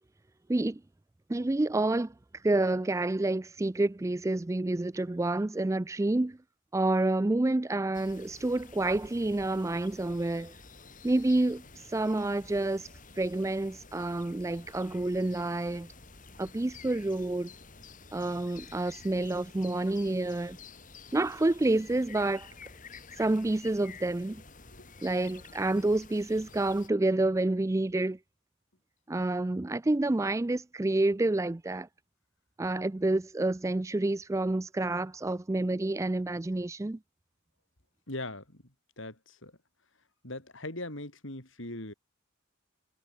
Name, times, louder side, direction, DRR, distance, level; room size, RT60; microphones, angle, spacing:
voice 1, 0.5-0.8 1.3-2.1 2.4-6.4 6.7-10.5 11.0-11.6 11.9-12.9 13.2-15.9 16.4-17.5 18.1-20.6 21.1-22.5 23.2-24.4 25.0-28.2 29.1-31.9 32.6-37.0, right 2 dB, 15° right, 0.4 m, -28 dB
sound 1, 7.9-26.9, left 4 dB, 40° left, 7.2 m, -51 dB
voice 2, 38.1-39.6 40.2-41.9, left 2 dB, 65° left, 5.2 m, -40 dB
head